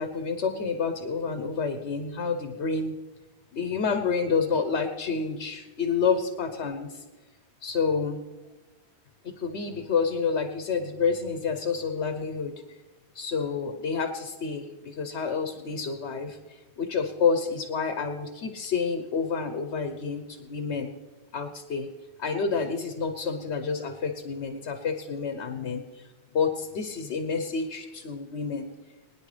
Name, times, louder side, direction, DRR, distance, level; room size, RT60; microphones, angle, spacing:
voice 1, 0.0-2.9 3.5-7.0 7.6-8.2 9.2-12.6 13.1-20.9 21.3-21.9 22.2-26.1 26.3-28.7, left 5 dB, 85° left, 7 dB, 1.2 m, -29 dB
21.5 x 9.9 x 3.3 m, 1.2 s
omnidirectional pair, 1.1 m